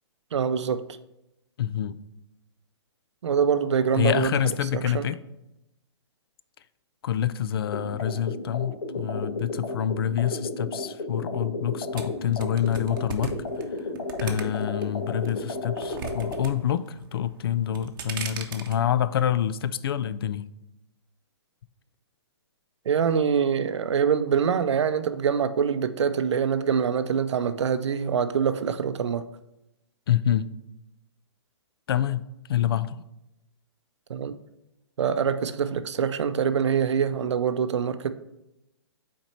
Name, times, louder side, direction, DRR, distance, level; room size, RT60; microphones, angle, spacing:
voice 1, 0.3-0.8 3.2-5.1 22.9-29.2 34.1-34.4 35.0-38.1, right 7 dB, 80° right, 11 dB, 0.5 m, -24 dB
voice 2, 1.6-2.0 3.9-5.2 7.0-13.3 14.2-20.5 30.1-30.5 31.9-32.2 32.5-33.0, left 10 dB, 55° left, 16 dB, 0.4 m, -27 dB
sound 1, 7.7-16.4, left 2 dB, 75° left, 1.5 m, -33 dB
sound 2, 12.0-14.8 15.2-16.5 16.8-17.3 17.6-18.8, right 7 dB, 45° right, 0.8 m, -36 dB
5.9 x 4.4 x 4.3 m, 0.90 s
hypercardioid pair, 160°, 15 cm